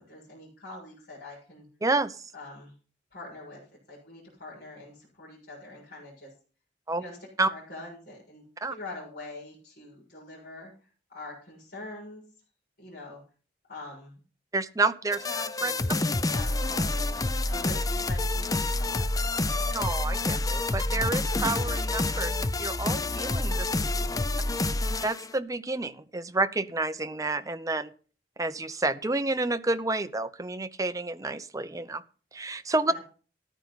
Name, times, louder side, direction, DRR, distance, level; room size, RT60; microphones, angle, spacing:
voice 1, 0.0-1.6 2.3-2.7 3.1-3.6 3.9-6.3 7.0-7.2 7.5-8.4 8.7-10.7 11.1-12.2 12.8-13.2 13.7-14.2 15.2-17.1 17.5-19.7 23.7-24.2 32.9-33.0, left 2 dB, 55° left, -5 dB, 6.9 m, -44 dB
voice 2, 1.8-2.3 6.9-7.0 7.4-7.5 8.6-8.7 14.5-15.2 15.6-15.7 19.7-23.7 25.0-27.9 28.4-32.0 32.3-32.9, right 2 dB, 20° right, 10 dB, 0.7 m, -29 dB
sound 1, 15.1-25.3, left 2 dB, 20° left, 0.6 m, -28 dB
14.0 x 11.0 x 4.1 m, 0.38 s
head